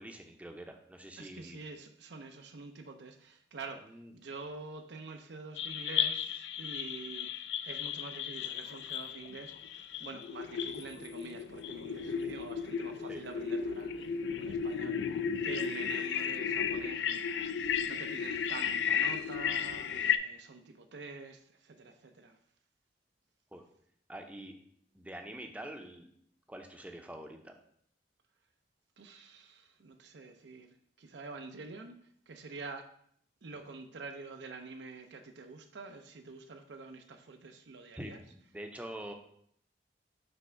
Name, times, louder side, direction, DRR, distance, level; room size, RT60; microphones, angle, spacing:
voice 1, 0.0-1.6 3.8-4.1 13.1-13.2 20.0-20.1 23.5-23.6 24.1-24.6 24.9-26.1 26.5-27.5 37.9-39.1, right 1 dB, 10° right, 4 dB, 0.6 m, -45 dB
voice 2, 1.2-9.7 10.0-15.2 15.4-22.4 29.0-32.9 33.4-38.2, right 3 dB, 80° right, 5 dB, 0.6 m, -47 dB
sound 1, 5.6-20.2, left 7 dB, 80° left, 0.4 m, -34 dB
5.3 x 3.4 x 5.7 m, 0.67 s
head